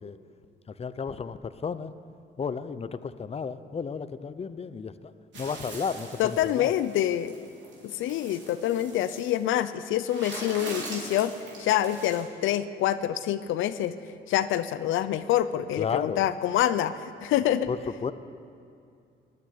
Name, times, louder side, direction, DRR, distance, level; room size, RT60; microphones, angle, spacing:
voice 1, 0.7-1.9 2.4-6.7 15.6-16.3 17.7-18.1, left 5 dB, 30° left, 13 dB, 0.7 m, -33 dB
sound 1, 5.3-9.4 10.0-12.2, right 2 dB, 65° right, 4.0 m, -42 dB
voice 2, 6.2-7.3 7.8-13.9 14.3-17.7, left 12 dB, 85° left, 13 dB, 0.6 m, -26 dB
16.0 x 9.4 x 9.6 m, 2.4 s
cardioid pair, 90°, 20 cm